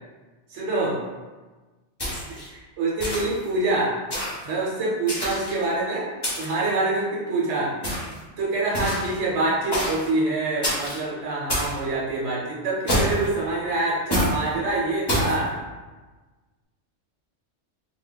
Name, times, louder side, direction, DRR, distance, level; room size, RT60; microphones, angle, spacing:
voice 1, 0.5-1.0 2.5-3.9 4.4-6.1 6.4-7.7 8.4-15.5, right 2 dB, 75° right, -5 dB, 1.0 m, -25 dB
sound 1, 2.0-2.5 3.0-3.4 4.1-4.5 5.1-5.6 6.2-6.6 7.8-8.2 8.7-9.2 9.7-10.1 10.6-11.0 11.5-11.8 12.9-13.3 14.1-14.4 15.1-15.4, equal, 25° left, 0.7 m, -26 dB
2.2 x 2.2 x 3.8 m, 1.3 s
omnidirectional pair, 1.3 m